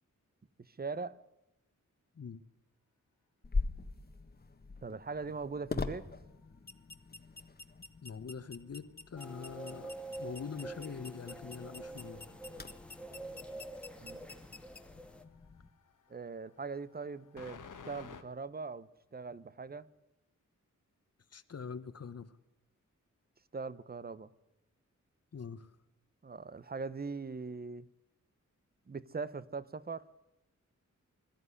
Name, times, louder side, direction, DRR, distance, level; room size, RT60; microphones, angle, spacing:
voice 1, 0.7-1.2 4.8-6.1 14.0-14.2 16.1-19.9 23.5-24.3 26.2-27.9 28.9-30.0, right 4 dB, 30° right, 18 dB, 0.8 m, -41 dB
sound 1, 3.4-15.7, left 3 dB, 30° left, 1.4 m, -43 dB
sound 2, 6.0-8.4 8.7-18.2, left 6 dB, 85° left, 1.6 m, -58 dB
voice 2, 8.0-9.9 10.2-12.2 21.3-22.3 25.3-25.7, left 6 dB, 55° left, 13 dB, 1.2 m, -44 dB
sound 3, 9.2-15.2, right 2 dB, 5° left, 1.6 m, -47 dB
22.0 x 13.5 x 9.9 m, 0.93 s
wide cardioid pair, 130°, 30 cm